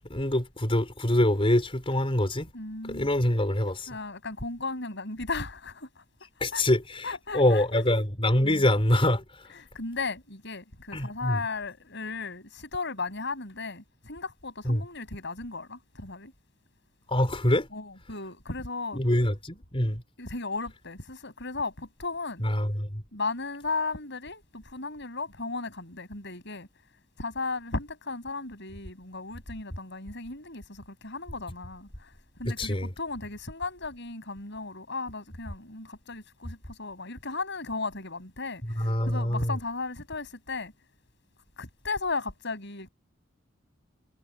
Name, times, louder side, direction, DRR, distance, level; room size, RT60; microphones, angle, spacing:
voice 1, 0.1-2.5 2.9-3.9 6.4-9.5 10.9-11.4 14.6-14.8 17.1-17.7 18.9-20.0 22.4-23.0 32.6-32.9 38.6-39.6, left 1 dB, 30° left, 4.3 m, -25 dB
voice 2, 2.5-3.1 3.9-6.0 6.5-6.6 7.0-7.8 8.4-8.6 9.7-16.3 17.7-19.0 19.8-22.5 23.1-26.7 27.2-32.1 32.4-40.7 41.6-42.9, left 3 dB, 65° left, 7.1 m, -35 dB
head